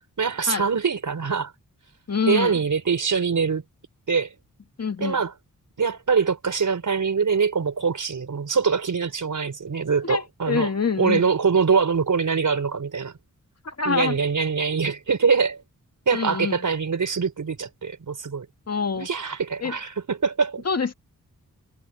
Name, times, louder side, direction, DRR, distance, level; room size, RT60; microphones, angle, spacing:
voice 1, 0.2-1.5 2.3-3.6 4.1-4.3 5.0-5.3 5.8-10.7 11.0-13.1 13.9-15.6 16.1-18.5 19.0-20.6, right 5 dB, 65° right, 5.3 m, -23 dB
voice 2, 2.1-2.6 4.8-5.2 10.0-11.2 13.6-14.2 16.1-16.6 18.7-19.1 19.6-19.7 20.7-20.9, left 5 dB, 50° left, 2.1 m, -25 dB
wide cardioid pair, 95°, 33 cm